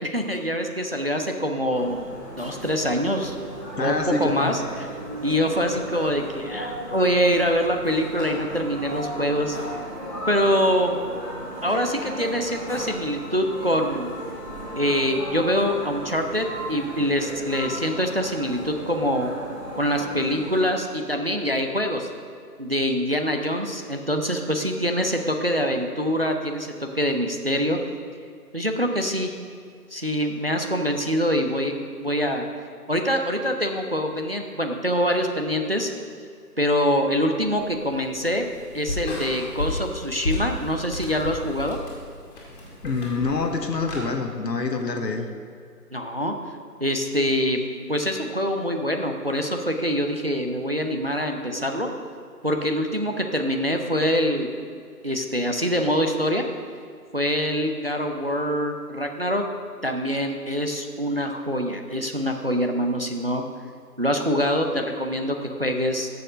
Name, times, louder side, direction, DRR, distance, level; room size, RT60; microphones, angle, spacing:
voice 1, 0.0-3.4 3.8-4.6 5.2-9.6 10.3-11.0 11.6-14.1 14.8-19.3 19.7-22.1 22.6-27.8 28.5-29.3 29.9-31.7 32.0-32.4 32.9-35.9 36.6-38.5 38.7-41.8 45.9-46.3 46.8-47.6 47.9-51.9 52.4-54.5 55.0-56.4 57.1-59.4 59.8-63.4 64.0-66.1, equal, 40° right, 4 dB, 0.5 m, -24 dB
sound 1, 1.7-20.6, equal, 10° right, 1.2 m, -36 dB
voice 2, 3.8-4.5 42.8-45.3, left 3 dB, 90° left, 5 dB, 1.1 m, -26 dB
sound 2, 37.4-44.0, left 2 dB, 35° left, 2.1 m, -33 dB
6.8 x 6.3 x 6.3 m, 2.2 s
figure-of-eight pair, 155°, 48 cm